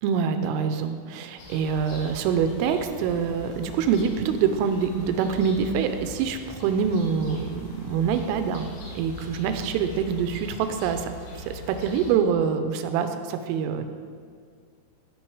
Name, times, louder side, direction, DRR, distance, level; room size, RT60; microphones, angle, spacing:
voice 1, 0.0-8.7 9.0-11.1 11.5-13.8, right 7 dB, 90° right, 8 dB, 3.1 m, -25 dB
sound 1, 1.4-12.1, left 2 dB, 85° left, 4.5 m, -41 dB
15.0 x 6.3 x 4.8 m, 2.1 s
omnidirectional pair, 5.7 m